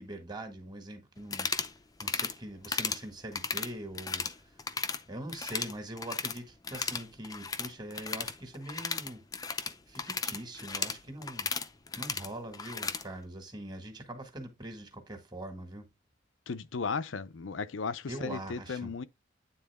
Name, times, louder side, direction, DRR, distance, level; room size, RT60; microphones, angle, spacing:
voice 1, 0.0-1.7 2.0-4.7 5.1-9.2 9.9-11.5 12.0-15.9 18.1-18.9, right 1 dB, 20° right, 1.8 m, -43 dB
sound 1, 1.2-1.7 2.0-2.3 2.6-3.0 3.3-4.3 4.6-5.0 5.3-6.4 6.6-13.0, left 5 dB, 20° left, 0.5 m, -35 dB
voice 2, 16.5-19.0, left 5 dB, 85° left, 0.6 m, -35 dB
9.3 x 3.8 x 3.6 m
head